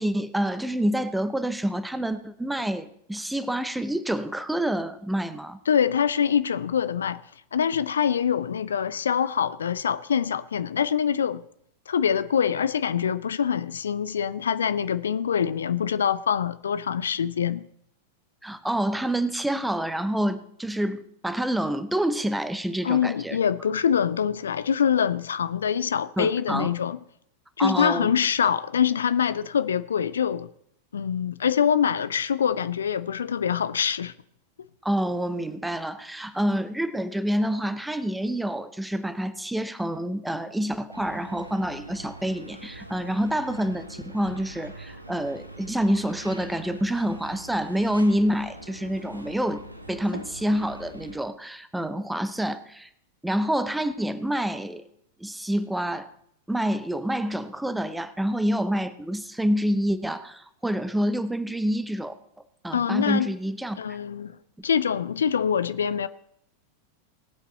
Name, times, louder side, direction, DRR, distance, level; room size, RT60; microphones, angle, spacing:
voice 1, 0.0-5.6 18.4-23.4 26.2-26.7 27.6-28.1 34.8-52.9 53.2-54.9 55.2-56.1 56.5-62.1 62.6-64.0, right 1 dB, 5° right, 0.8 m, -27 dB
voice 2, 5.7-7.2 7.5-11.4 11.9-17.7 22.8-27.0 27.6-30.5 30.9-34.1 62.7-63.3 63.8-64.3 64.6-66.1, left 8 dB, 65° left, 0.4 m, -24 dB
sound 1, 40.9-51.2, right 1 dB, 90° right, 1.0 m, -43 dB
18.5 x 8.1 x 4.1 m
figure-of-eight pair, 90°, 0 cm